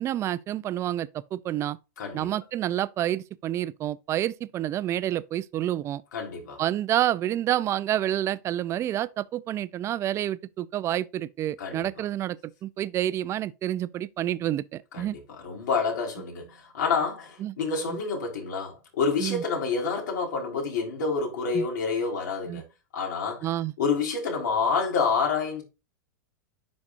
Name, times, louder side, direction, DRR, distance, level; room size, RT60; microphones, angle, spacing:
voice 1, 0.0-1.8 2.1-6.0 6.6-15.2 17.4-17.6 17.9-18.0 19.2-19.4 21.5-21.7 22.5-22.6 23.4-23.7, right 12 dB, 30° right, 0.5 m, -28 dB
voice 2, 2.0-2.3 6.1-6.6 11.6-11.9 14.9-15.1 15.4-22.6 22.9-23.4 23.8-25.6, left 5 dB, 75° left, 4.2 m, -28 dB
11.0 x 4.2 x 2.5 m
supercardioid pair, 130°, 10 cm